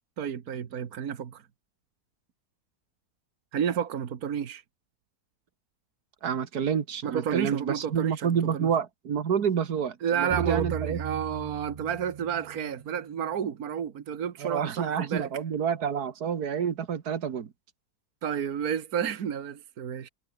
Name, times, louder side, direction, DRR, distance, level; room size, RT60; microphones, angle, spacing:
voice 1, 0.2-1.4 3.5-4.6 7.0-8.7 10.0-15.3 18.2-20.1, right 8 dB, 70° right, 1.8 m, -31 dB
voice 2, 6.2-11.0 14.4-17.5, right 7 dB, 90° right, 2.0 m, -28 dB
sound 1, 10.3-13.4, right 7 dB, 55° right, 0.4 m, -37 dB
omnidirectional pair, 1.6 m